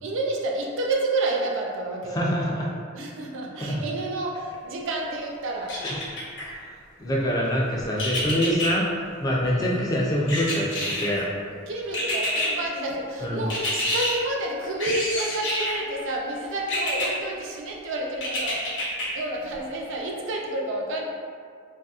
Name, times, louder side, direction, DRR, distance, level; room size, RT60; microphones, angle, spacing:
voice 1, 0.0-2.7 2.9-5.8 9.4-9.8 11.5-18.8 19.1-21.0, right 2 dB, 60° right, 0 dB, 0.4 m, -30 dB
voice 2, 2.1-2.7 3.6-3.8 5.8-6.0 6.6-8.9 9.2-11.3 13.2-13.4, equal, 15° left, -3 dB, 0.3 m, -25 dB
sound 1, 5.7-6.5 8.0-8.7 10.3-11.2 11.9-12.5 13.5-14.1 14.8-15.8 16.7-17.1 18.2-19.1 19.5-19.6, left 1 dB, 55° left, 0.6 m, -27 dB
2.6 x 2.6 x 2.3 m, 2.1 s
head